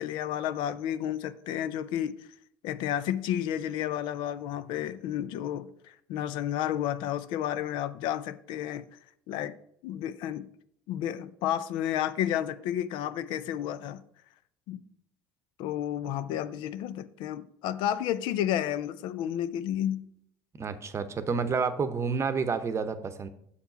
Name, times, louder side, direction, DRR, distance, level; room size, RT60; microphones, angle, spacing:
voice 1, 0.0-2.2 2.6-8.9 9.3-9.5 9.8-10.5 10.9-14.0 14.7-14.8 15.6-20.0, left 11 dB, 70° left, 0.5 m, -31 dB
voice 2, 20.6-23.3, right 5 dB, 35° right, 0.8 m, -29 dB
7.1 x 4.5 x 5.6 m
hypercardioid pair, 75°, 9 cm